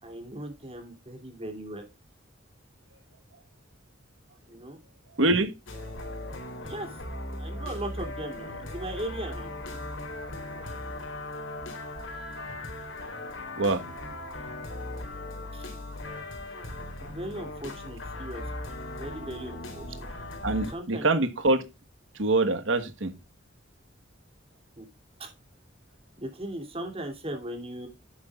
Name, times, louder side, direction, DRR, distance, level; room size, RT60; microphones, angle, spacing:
voice 1, 0.0-1.8 4.5-4.8 6.6-6.9 7.4-9.5 15.5-15.7 17.1-18.4 19.0-20.1 20.7-21.1 24.8-24.9 25.2-25.3 26.2-27.9, right 1 dB, 30° right, 2.8 m, -38 dB
voice 2, 5.2-5.5 13.6-13.9 20.4-21.7 22.2-23.1, right 2 dB, 85° right, 1.4 m, -24 dB
sound 1, 5.7-20.7, left 2 dB, 80° left, 3.4 m, -38 dB
11.5 x 8.6 x 2.4 m
head